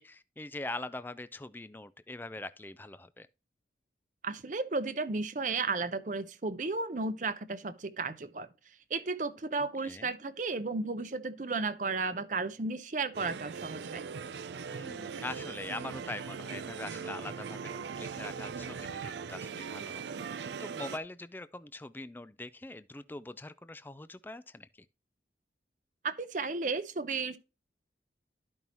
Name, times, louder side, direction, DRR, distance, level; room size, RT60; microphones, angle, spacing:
voice 1, 0.0-3.3 9.6-10.2 14.7-24.7, left 2 dB, 10° left, 0.3 m, -43 dB
voice 2, 4.2-8.5 8.9-14.0 26.0-27.4, right 3 dB, 45° right, 0.7 m, -34 dB
sound 1, 13.1-21.0, right 6 dB, 75° right, 0.4 m, -40 dB
12.5 x 5.4 x 3.0 m
head